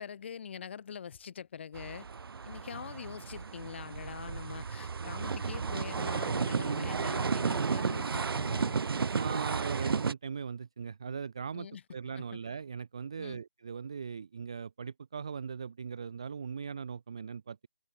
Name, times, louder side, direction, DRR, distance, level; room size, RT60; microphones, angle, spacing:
voice 1, 0.0-2.1 2.4-8.8 11.5-11.8 12.2-12.4 13.2-13.4, left 7 dB, 30° left, 2.4 m, -44 dB
sound 1, 1.7-10.1, right 5 dB, 75° right, 0.4 m, -33 dB
voice 2, 9.1-17.7, right 6 dB, 15° right, 0.4 m, -39 dB
figure-of-eight pair, 170°, 12 cm